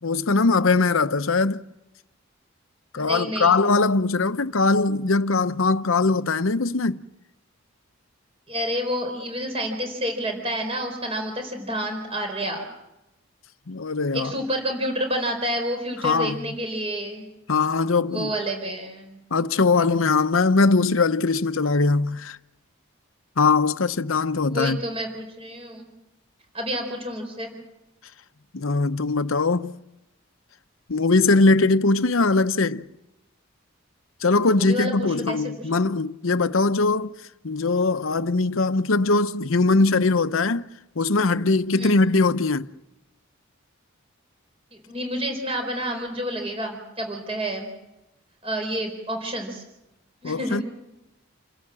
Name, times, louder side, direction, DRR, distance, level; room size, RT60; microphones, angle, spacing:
voice 1, 0.0-1.6 2.9-7.0 13.7-14.3 16.0-16.4 17.5-18.3 19.3-22.4 23.4-24.8 28.5-29.7 30.9-32.8 34.2-37.1 37.4-40.7 41.0-42.7 50.2-50.6, left 3 dB, 75° left, 0.8 m, -21 dB
voice 2, 2.9-3.6 8.5-12.7 14.1-17.3 18.1-19.2 24.5-25.9 26.5-27.5 34.5-35.4 41.8-42.0 44.7-47.7 48.4-49.6 50.2-50.6, equal, 25° right, 4.4 m, -29 dB
29.0 x 16.5 x 7.6 m
head